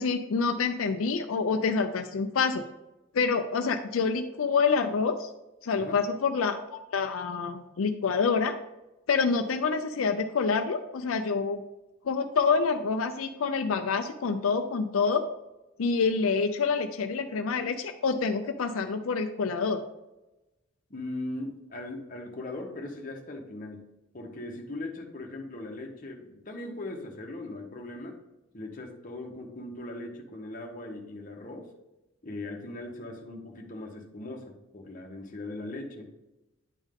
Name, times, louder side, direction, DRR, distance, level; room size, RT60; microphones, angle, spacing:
voice 1, 0.0-2.6 3.1-5.3 5.6-8.5 9.1-11.6 12.0-15.2 15.8-19.8, left 5 dB, 85° left, 6 dB, 0.5 m, -27 dB
voice 2, 20.9-23.9 24.1-28.1 28.5-31.7 32.2-36.1, left 2 dB, 40° left, 1 dB, 1.1 m, -39 dB
10.0 x 3.6 x 3.6 m, 0.98 s
head